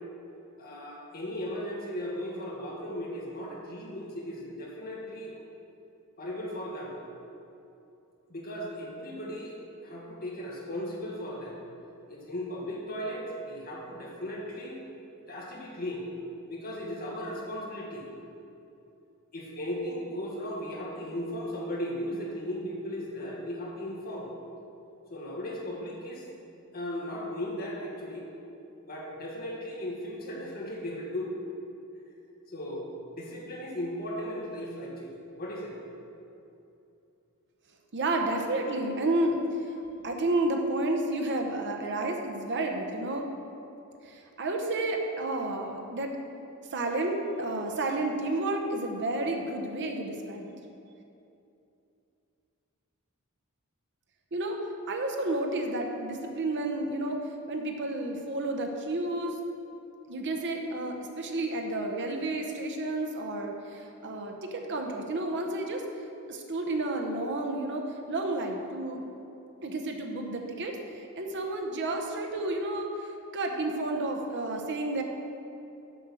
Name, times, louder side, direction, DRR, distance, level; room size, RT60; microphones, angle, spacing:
voice 1, 0.6-5.4 6.2-7.0 8.3-11.6 12.1-14.8 15.3-16.1 16.5-18.1 19.3-24.3 25.1-26.3 26.7-28.3 28.8-31.3 32.5-35.8, equal, 45° left, -3 dB, 1.7 m, -36 dB
voice 2, 37.9-39.7 40.0-43.3 44.0-46.2 46.7-50.5 54.3-54.6 54.9-57.2 57.5-59.4 60.1-65.8 66.3-69.0 69.6-75.0, right 2 dB, 55° right, 3 dB, 0.9 m, -31 dB
7.8 x 6.2 x 6.3 m, 2.7 s
head